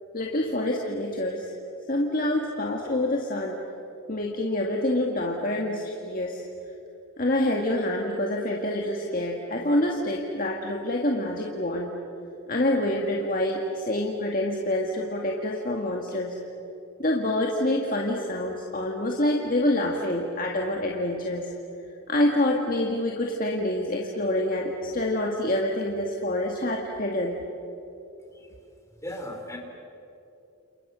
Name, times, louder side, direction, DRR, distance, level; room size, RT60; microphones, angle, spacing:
voice 1, 0.1-1.5 1.9-3.6 4.1-6.4 7.2-11.9 12.5-16.4 17.0-21.5 22.1-27.4, left 1 dB, 40° left, 0 dB, 1.9 m, -26 dB
voice 2, 29.0-29.6, left 1 dB, 15° left, 2 dB, 3.5 m, -36 dB
29.0 x 29.0 x 6.3 m, 2.9 s
head